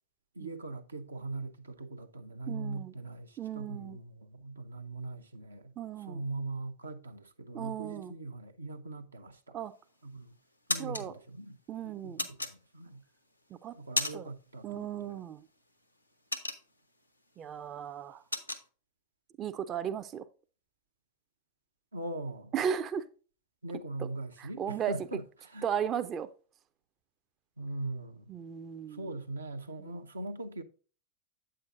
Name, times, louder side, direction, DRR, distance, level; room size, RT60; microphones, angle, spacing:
voice 1, 0.4-5.7 6.1-9.6 10.0-10.3 10.7-11.6 11.8-13.0 13.7-15.2 21.9-22.5 23.6-25.7 27.6-28.3 28.9-30.6, right 2 dB, 80° right, 0.7 m, -41 dB
voice 2, 2.5-2.9 3.4-4.0 5.8-6.2 7.5-8.1 9.5-9.7 10.8-11.1 11.7-12.3 13.6-13.7 14.1-14.3 14.6-15.4 17.4-18.2 19.4-20.3 22.5-23.1 24.0-24.1 24.4-24.9 25.6-26.3 28.3-29.1 29.8-30.0, right 9 dB, 30° right, 0.5 m, -35 dB
sound 1, 9.6-10.1 10.4-11.0 12.2-13.0 13.5-14.5 14.7-15.0 15.4-17.0 17.4-17.6 17.8-18.6, left 2 dB, 90° left, 0.9 m, -34 dB
8.5 x 7.8 x 2.5 m
figure-of-eight pair, 90°, 0 cm